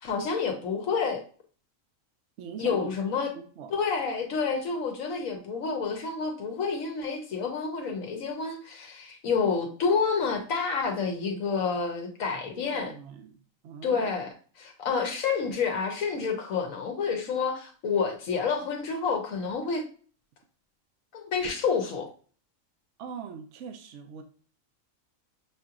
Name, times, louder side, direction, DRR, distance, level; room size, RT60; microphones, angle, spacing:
voice 1, 0.0-1.2 2.6-3.3 3.7-12.9 13.8-19.8 21.1-22.1, left 5 dB, 80° left, 3 dB, 1.2 m, -29 dB
voice 2, 2.4-2.8 3.3-3.7 12.3-13.4 13.6-14.1 14.9-15.0 23.0-24.2, right 7 dB, 65° right, 6 dB, 0.9 m, -42 dB
6.5 x 2.8 x 2.4 m, 0.42 s
omnidirectional pair, 1.4 m